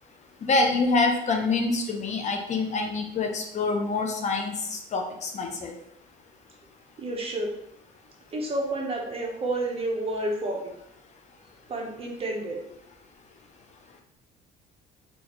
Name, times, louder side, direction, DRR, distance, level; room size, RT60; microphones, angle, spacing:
voice 1, 0.4-5.7, left 3 dB, 45° left, 3 dB, 0.6 m, -26 dB
voice 2, 7.0-7.5 8.3-10.7 11.7-12.6, right 2 dB, 35° right, 0 dB, 0.8 m, -30 dB
3.8 x 2.5 x 3.0 m, 0.78 s
cardioid pair, 110°, 17 cm